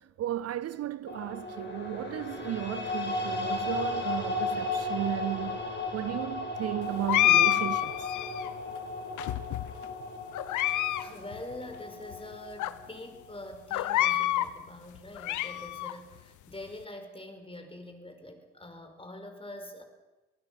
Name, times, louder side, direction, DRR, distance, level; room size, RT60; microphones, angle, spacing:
voice 1, 0.0-5.6 5.9-7.9, right 13 dB, 50° right, 0.6 m, -34 dB
sound 1, 1.1-13.3, left 2 dB, 35° left, 6.3 m, -35 dB
sound 2, 7.1-8.5 9.2-9.8 10.3-11.0 11.3-11.4 12.1-12.2 12.6-12.7 13.7-14.5 15.0-15.9, left 13 dB, 70° left, 1.0 m, -27 dB
voice 2, 11.0-19.8, left 1 dB, 15° left, 5.2 m, -45 dB
27.0 x 19.0 x 6.0 m
hypercardioid pair, 55°, 31 cm